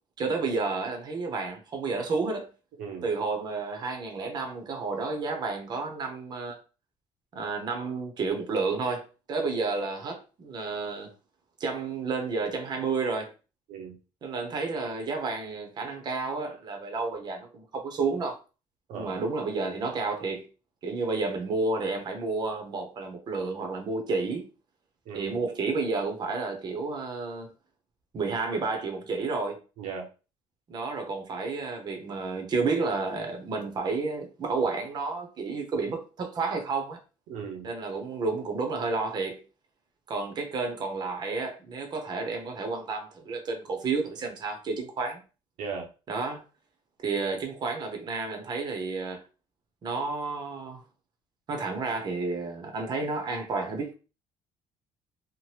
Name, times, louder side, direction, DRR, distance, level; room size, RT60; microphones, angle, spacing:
voice 1, 0.2-2.5 3.0-6.6 7.3-11.1 11.6-13.3 14.2-18.4 18.9-20.5 20.8-24.5 25.1-27.5 28.1-29.6 30.7-37.0 37.6-39.4 40.1-45.2 46.1-46.4 47.0-49.2 49.8-50.8 51.5-53.9, right 4 dB, 35° right, 0.7 m, -31 dB
voice 2, 18.9-19.2 25.1-25.4 29.8-30.1 37.3-37.7 45.6-45.9, right 5 dB, 80° right, 0.7 m, -37 dB
2.8 x 2.1 x 3.2 m
cardioid pair, 130°, 12 cm